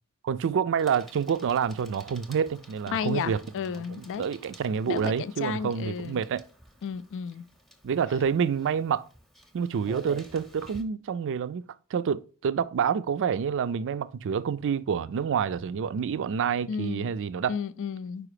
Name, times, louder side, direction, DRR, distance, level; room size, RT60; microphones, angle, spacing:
voice 1, 0.2-3.4 3.9-6.4 7.8-9.1 9.5-11.6 11.9-17.6, right 7 dB, 55° right, 0.4 m, -28 dB
Bicycle, 0.8-10.8, equal, ahead, 0.8 m, -50 dB
voice 2, 2.9-4.3 4.9-6.2 6.8-7.4 16.7-17.1 17.5-18.3, left 7 dB, 55° left, 0.4 m, -33 dB
4.9 x 4.9 x 4.9 m
head